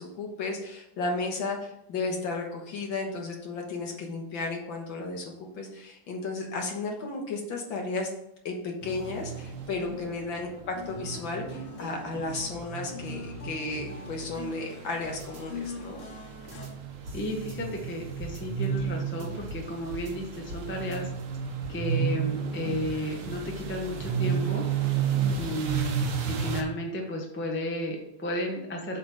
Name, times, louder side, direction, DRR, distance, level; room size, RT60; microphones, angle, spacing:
voice 1, 0.0-8.1 8.5-16.0, left 3 dB, 65° left, 1 dB, 2.0 m, -34 dB
sound 1, 8.8-26.6, right 6 dB, 80° right, 1.8 m, -33 dB
sound 2, 10.7-16.7, left 5 dB, 90° left, 2.1 m, -43 dB
sound 3, 15.2-15.4 16.5-16.7 17.1-19.7 19.9-20.6 20.9-21.7, left 1 dB, 45° right, 1.3 m, -44 dB
voice 2, 17.1-21.1 21.7-24.6 25.3-29.0, equal, 10° left, 0 dB, 0.7 m, -33 dB
8.0 x 3.6 x 6.1 m, 0.78 s
omnidirectional pair, 2.3 m